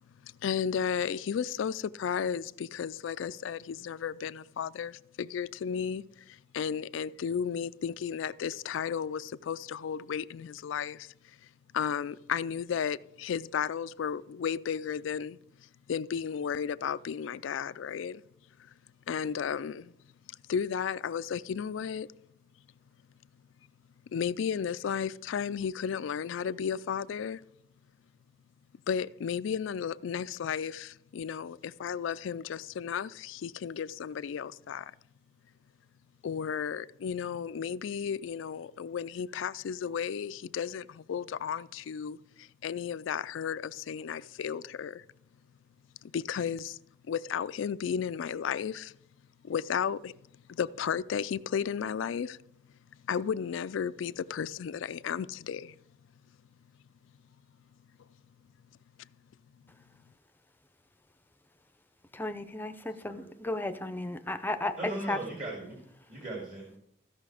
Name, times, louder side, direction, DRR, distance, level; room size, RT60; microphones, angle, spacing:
voice 1, 0.2-11.1 11.7-15.4 15.9-18.2 18.6-18.7 19.1-19.9 20.5-22.1 24.1-27.4 28.9-34.9 36.2-45.0 46.0-46.8 47.1-48.9 49.4-50.1 50.5-52.4 53.1-55.8, left 7 dB, 75° left, 0.4 m, -33 dB
voice 2, 62.1-65.2, left 2 dB, 10° left, 0.6 m, -34 dB
voice 3, 64.5-65.8 66.1-66.8, right 2 dB, 45° right, 2.7 m, -39 dB
15.0 x 5.7 x 4.9 m
head